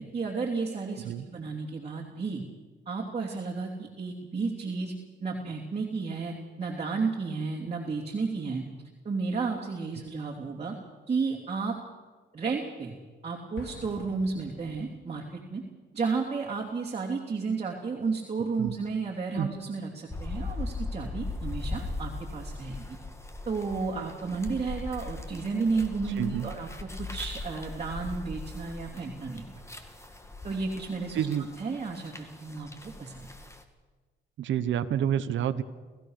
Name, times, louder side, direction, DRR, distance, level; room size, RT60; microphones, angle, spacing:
voice 1, 0.0-2.4 2.9-4.9 5.2-8.6 9.0-10.7 11.1-11.8 12.3-12.9 13.2-15.6 15.9-23.0 23.5-29.4 30.4-31.3 31.6-32.7 33.0-33.3, right 4 dB, 30° right, -2 dB, 3.1 m, -32 dB
Explosion, 13.6-15.3, left 3 dB, 70° left, 3.5 m, -47 dB
sound 1, 20.1-33.6, left 3 dB, 15° left, 2.1 m, -39 dB
voice 2, 26.0-26.5 31.1-31.5 34.4-35.6, right 10 dB, 70° right, 10 dB, 1.1 m, -29 dB
29.5 x 15.5 x 6.5 m, 1.3 s
cardioid pair, 90°, 20 cm